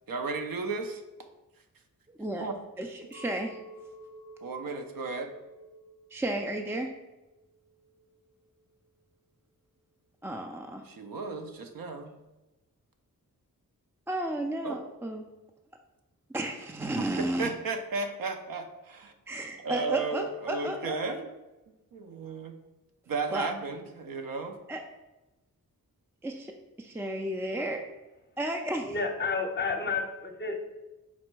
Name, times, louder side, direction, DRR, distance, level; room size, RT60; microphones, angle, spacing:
voice 1, 0.1-1.3 2.4-2.6 4.4-5.3 10.8-12.2 14.6-14.8 17.0-19.1 19.6-21.3 21.7-22.6 23.1-24.6, right 4 dB, 70° right, 6 dB, 0.6 m, -34 dB
voice 2, 2.8-3.6 6.1-6.9 10.2-10.8 14.1-15.2 16.3-17.5 19.3-21.1 23.3-23.5 24.7-24.8 26.2-26.5 26.8-27.8 28.4-29.0, right 1 dB, 5° right, 2 dB, 0.3 m, -33 dB
Chink clink, 3.1-8.6, right 1 dB, 35° right, 0.7 m, -51 dB
voice 3, 28.8-30.6, left 4 dB, 30° left, 4 dB, 0.6 m, -30 dB
4.1 x 2.1 x 4.5 m, 1.0 s
cardioid pair, 50°, 35 cm